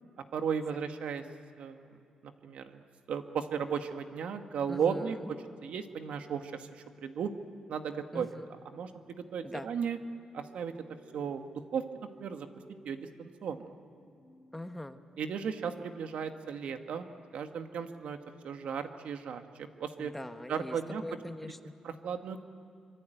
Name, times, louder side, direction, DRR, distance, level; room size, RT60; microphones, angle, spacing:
voice 1, 0.3-1.2 1.6-5.2 5.6-7.3 7.7-8.3 8.6-10.0 10.3-10.7 11.1-11.8 12.2-12.5 12.8-13.7 15.2-17.1 17.3-18.2 18.4-20.1 20.5-21.0 21.8-22.4, right 7 dB, 75° right, 7 dB, 1.6 m, -35 dB
voice 2, 4.7-5.2 8.1-8.5 9.4-9.7 14.5-15.0 20.0-20.8 21.0-21.7, left 1 dB, 10° left, 8 dB, 1.0 m, -41 dB
sound 1, 8.0-18.7, right 3 dB, 25° right, 4.5 m, -62 dB
25.0 x 25.0 x 9.2 m, 2.5 s
cardioid pair, 135°, 2 cm